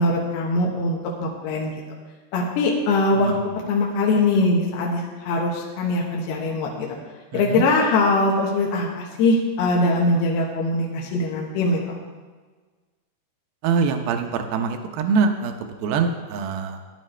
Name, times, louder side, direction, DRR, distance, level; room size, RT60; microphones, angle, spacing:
voice 1, 0.0-1.7 2.3-3.3 3.7-7.0 7.3-11.8, left 2 dB, 70° left, -2 dB, 3.0 m, -22 dB
voice 2, 7.3-7.7 13.6-16.8, right 5 dB, 75° right, 6 dB, 2.2 m, -24 dB
15.0 x 11.0 x 3.3 m, 1.4 s
omnidirectional pair, 5.1 m